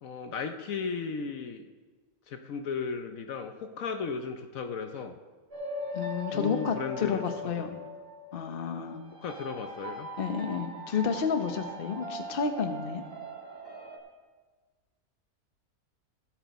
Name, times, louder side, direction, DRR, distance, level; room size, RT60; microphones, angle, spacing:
voice 1, 0.0-1.6 2.3-5.2 6.3-7.9 9.2-10.1, left 5 dB, 65° left, 6 dB, 1.1 m, -36 dB
sound 1, 5.5-14.0, equal, 35° right, 2.6 m, -40 dB
voice 2, 5.9-7.7 8.3-9.0 10.2-13.0, left 6 dB, 45° left, 7 dB, 1.0 m, -31 dB
17.0 x 7.8 x 4.2 m, 1.4 s
omnidirectional pair, 1.6 m